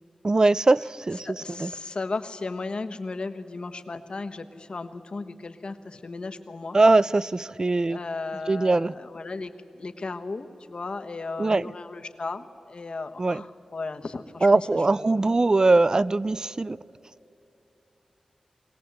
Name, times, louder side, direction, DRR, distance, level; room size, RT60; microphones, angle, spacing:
voice 1, 0.2-1.7 6.7-8.0 8.5-8.9 11.4-11.7 13.2-13.4 14.4-16.8, right 2 dB, 35° right, 0.4 m, -21 dB
voice 2, 1.2-6.8 7.8-15.2, left 3 dB, 55° left, 1.2 m, -35 dB
23.0 x 17.5 x 7.9 m
wide cardioid pair, 65°, 2 cm